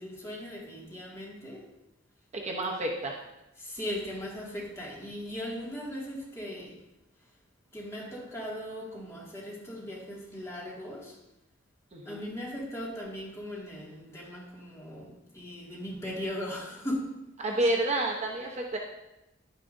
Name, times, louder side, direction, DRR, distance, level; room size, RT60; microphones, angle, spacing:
voice 1, 0.0-1.7 3.6-6.8 7.7-11.2 12.0-17.2, equal, 15° left, -5 dB, 2.1 m, -38 dB
voice 2, 2.3-3.1 11.9-12.2 17.4-18.8, right 1 dB, 35° right, 0 dB, 0.9 m, -29 dB
10.5 x 9.7 x 2.6 m, 0.93 s
head